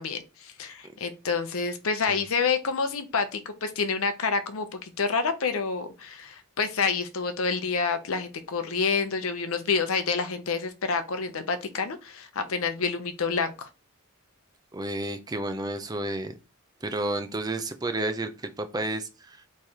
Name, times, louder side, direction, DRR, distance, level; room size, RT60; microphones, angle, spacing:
voice 1, 0.0-13.7, left 5 dB, 70° left, 0.7 m, -28 dB
voice 2, 14.7-16.4 16.8-19.4, right 2 dB, 15° right, 0.4 m, -31 dB
4.3 x 3.2 x 3.6 m
head